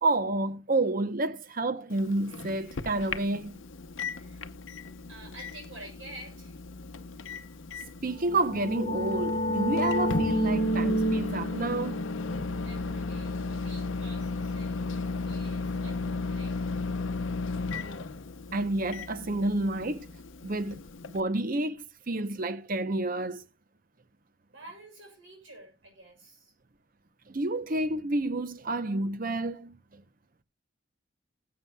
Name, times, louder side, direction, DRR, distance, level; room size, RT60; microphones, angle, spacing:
voice 1, 0.0-3.6 8.0-12.1 18.5-20.1 20.4-20.8 21.0-23.4 27.3-30.0, right 2 dB, 45° right, 0.8 m, -29 dB
Microwave oven, 1.9-21.2, left 3 dB, 70° left, 0.7 m, -35 dB
voice 2, 4.1-4.5 5.1-6.6 12.6-16.8 24.5-26.5, right 2 dB, 75° right, 6.2 m, -49 dB
sound 1, 8.1-13.7, right 1 dB, 30° left, 1.0 m, -30 dB
20.5 x 7.8 x 2.3 m
head